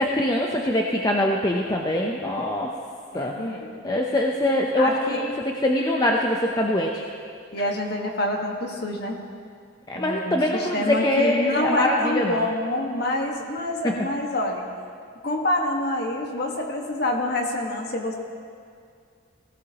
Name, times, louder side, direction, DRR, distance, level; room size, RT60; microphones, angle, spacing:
voice 1, 0.0-2.7 3.1-3.4 3.8-5.3 5.6-7.0 9.9-12.4 13.8-13.9, left 1 dB, 20° left, 0 dB, 0.7 m, -23 dB
voice 2, 3.1-3.8 4.8-5.3 7.5-9.2 9.9-14.6 15.2-18.1, left 1 dB, 50° left, 1 dB, 1.5 m, -27 dB
18.5 x 16.0 x 3.0 m, 2.2 s
head